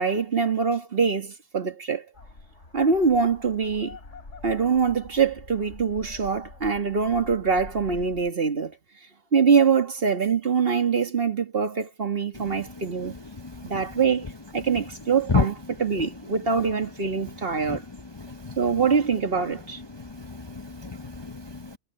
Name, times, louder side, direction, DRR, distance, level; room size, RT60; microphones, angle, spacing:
voice 1, 0.0-2.1 2.7-4.0 4.4-8.8 9.3-13.1 13.6-17.8 18.6-19.8, right 5 dB, 50° right, 1.9 m, -24 dB
sound 1, 2.1-8.3, left 3 dB, 85° left, 4.4 m, -45 dB
voice 2, 18.2-18.6 20.2-21.8, left 4 dB, 25° left, 0.7 m, -29 dB
omnidirectional pair, 1.2 m